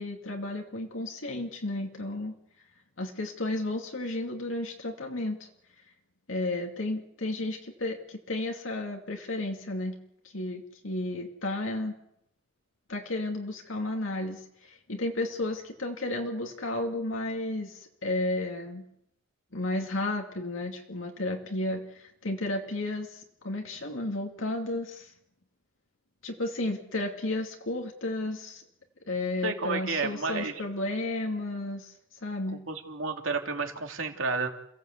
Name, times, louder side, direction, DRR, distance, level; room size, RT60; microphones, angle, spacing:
voice 1, 0.0-2.4 3.0-5.5 6.3-10.0 10.3-11.9 12.9-18.8 19.5-25.1 26.2-28.6 29.1-31.9 32.2-32.6, left 2 dB, 85° left, 2 dB, 2.5 m, -33 dB
voice 2, 29.4-30.6 32.7-34.5, right 4 dB, 80° right, 3 dB, 3.2 m, -31 dB
29.0 x 16.5 x 8.2 m, 0.80 s
head